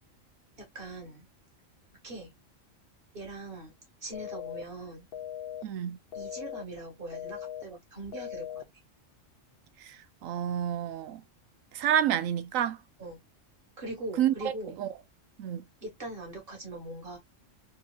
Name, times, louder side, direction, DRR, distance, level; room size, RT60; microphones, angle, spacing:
voice 1, 0.6-1.3 2.0-2.3 3.1-5.1 6.1-8.6 13.0-13.2 13.8-14.8 15.8-17.2, right 1 dB, 45° right, 2.1 m, -41 dB
sound 1, 4.1-4.6 5.1-5.6 6.1-6.6 7.1-7.6 8.1-8.6, left 10 dB, 55° left, 0.8 m, -39 dB
voice 2, 5.6-6.0 9.9-10.0 10.2-11.2 11.7-12.8 14.2-14.5 14.8-14.9 15.4-15.6, right 10 dB, 90° right, 1.0 m, -28 dB
4.2 x 2.9 x 2.4 m
omnidirectional pair, 1.3 m